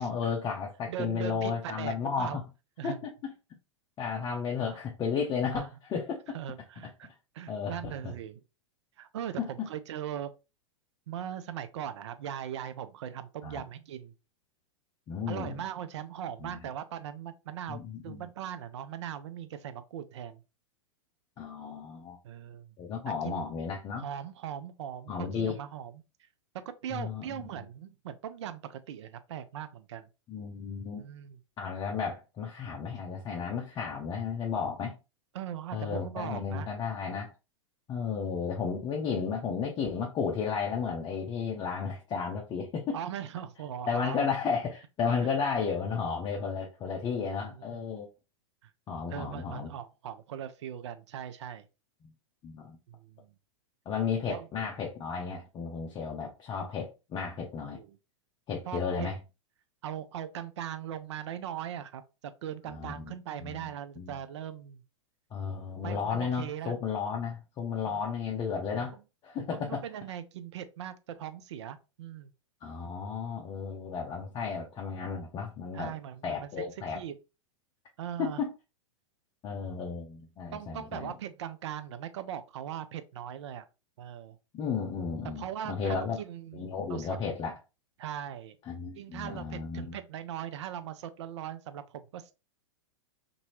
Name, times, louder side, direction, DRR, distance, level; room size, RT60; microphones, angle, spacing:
voice 1, 0.0-2.4 2.8-3.0 3.2-3.3 4.0-6.4 7.5-8.1 9.4-9.7 13.4-13.6 15.1-15.6 16.4-16.6 17.7-18.3 21.4-22.2 22.8-24.0 25.1-25.6 26.9-27.6 30.3-31.0 31.6-34.9 35.7-37.3 37.9-43.0 43.9-48.1 48.9-49.7 52.0-52.1 52.4-52.8 53.9-57.8 58.5-59.2 62.6-63.1 63.4-63.7 64.0-64.1 65.3-69.0 69.2-69.8 72.6-75.9 76.2-77.0 78.2-78.5 79.4-81.1 84.5-86.2 86.5-87.6 88.7-90.0, left 6 dB, 30° left, 0.6 m, -33 dB
voice 2, 0.9-2.4 2.8-3.0 4.6-4.8 5.5-5.7 6.3-7.1 7.3-8.4 9.0-10.3 11.1-14.1 15.3-20.4 22.2-22.7 23.2-23.4 24.0-26.0 26.8-30.1 31.0-31.4 35.3-36.7 42.9-44.3 47.5-47.8 48.6-48.7 49.1-51.7 52.9-53.3 54.3-54.5 57.8-58.0 58.7-59.2 59.8-64.8 65.8-66.7 67.9-68.0 68.7-68.9 69.4-72.3 75.7-77.1 78.0-78.4 80.5-83.7 84.0-84.4 85.2-86.6 86.9-87.2 88.0-88.6 88.9-92.3, right 10 dB, 65° right, 0.4 m, -40 dB
2.7 x 2.6 x 2.9 m
hypercardioid pair, 100°, 16 cm